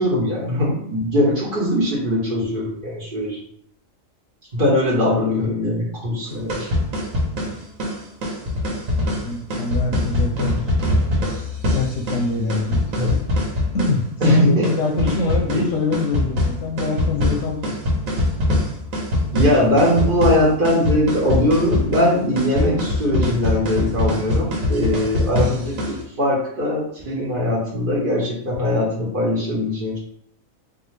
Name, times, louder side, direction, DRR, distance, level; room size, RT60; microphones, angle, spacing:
voice 1, 0.0-3.4 4.5-6.7 13.0-13.2 14.2-14.7 14.9-15.1 15.5-15.6 19.3-30.0, left 1 dB, 40° right, -5 dB, 1.2 m, -20 dB
sound 1, 6.3-26.0, left 1 dB, 80° right, 1.4 m, -23 dB
voice 2, 9.2-11.1 11.7-12.9 13.7-17.7, left 4 dB, 65° left, 2 dB, 0.8 m, -25 dB
4.0 x 2.6 x 3.2 m, 0.68 s
omnidirectional pair, 1.4 m